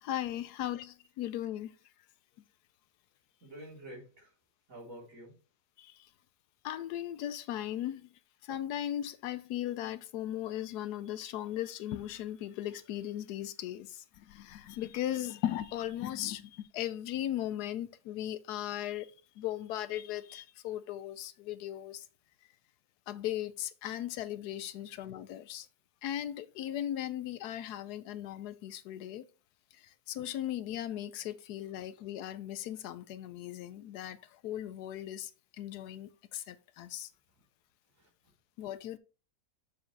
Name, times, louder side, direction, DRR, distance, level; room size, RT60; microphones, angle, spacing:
voice 1, 0.0-1.7 5.8-5.9 6.6-8.0 8.4-19.1 19.4-22.1 23.1-25.7 26.0-29.2 30.1-34.2 34.4-35.3 35.6-37.1 38.6-39.0, left 12 dB, 85° left, 1.1 m, -37 dB
voice 2, 3.4-4.4 4.7-5.4 37.9-38.1 38.6-38.7, right 1 dB, 55° right, 4.1 m, -49 dB
7.1 x 6.9 x 3.3 m
omnidirectional pair, 1.7 m